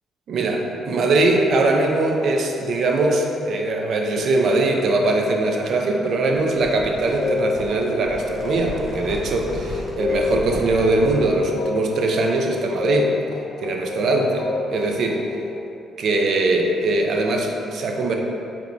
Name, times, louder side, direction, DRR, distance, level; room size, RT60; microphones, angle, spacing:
voice 1, 0.3-13.2 13.6-15.2 16.0-18.1, right 2 dB, 65° right, 2 dB, 0.5 m, -21 dB
sound 1, 6.3-11.4, right 1 dB, 20° right, 1.2 m, -35 dB
sound 2, 6.9-15.6, left 4 dB, 90° left, 0.4 m, -29 dB
4.9 x 3.3 x 2.7 m, 2.6 s
cardioid pair, 90°, 0 cm